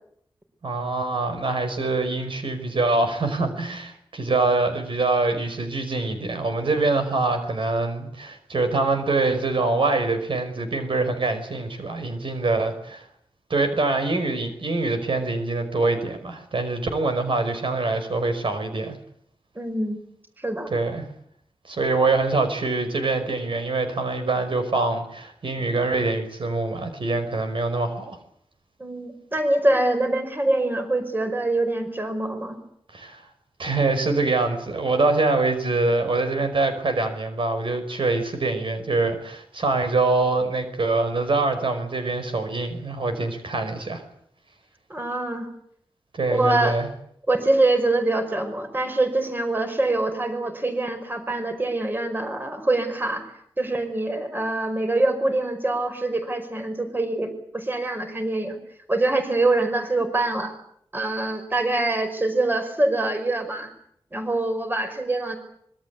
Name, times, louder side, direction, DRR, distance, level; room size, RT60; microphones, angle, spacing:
voice 1, 0.6-13.1 13.5-19.0 20.7-21.1 21.7-28.2 32.9-33.2 33.6-44.0 46.1-46.9, right 3 dB, 65° right, 7 dB, 5.3 m, -24 dB
voice 2, 19.6-20.0 20.4-20.7 28.8-32.6 44.9-45.5 46.3-46.8 47.3-53.3 53.6-58.6 58.9-60.5 60.9-63.7 64.1-65.4, right 2 dB, 20° right, 7 dB, 5.2 m, -24 dB
25.5 x 23.0 x 8.4 m, 0.69 s
wide cardioid pair, 125°, 10 cm